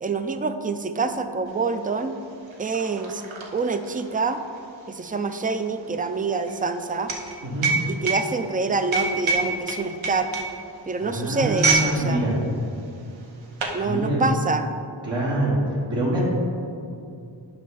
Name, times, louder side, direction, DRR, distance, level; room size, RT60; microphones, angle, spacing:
voice 1, 0.0-2.1 2.6-3.2 3.5-4.4 4.9-7.1 7.9-10.3 10.9-12.3 13.7-14.7, right 4 dB, 20° right, 8 dB, 0.4 m, -26 dB
sound 1, 1.6-1.7 2.0-11.9 12.2-12.5 13.2-13.8, right 4 dB, 85° right, 1.1 m, -27 dB
voice 2, 7.4-7.7 11.0-12.4 13.8-14.3 15.0-15.6 15.9-16.2, right 1 dB, 65° right, -8 dB, 1.7 m, -25 dB
8.9 x 5.6 x 4.0 m, 2.5 s
wide cardioid pair, 65°, 45 cm